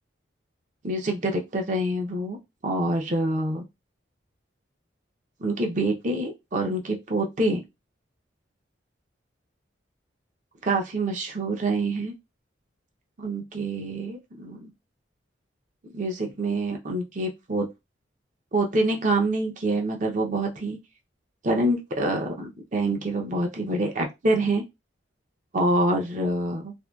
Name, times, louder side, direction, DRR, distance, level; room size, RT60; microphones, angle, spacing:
voice 1, 0.8-2.4 2.6-3.6 5.4-7.6 10.6-12.1 13.2-14.6 15.9-17.7 18.5-20.8 21.4-24.6 25.5-26.7, right 2 dB, 40° right, 2 dB, 0.5 m, -26 dB
2.6 x 2.1 x 2.2 m, 0.22 s
head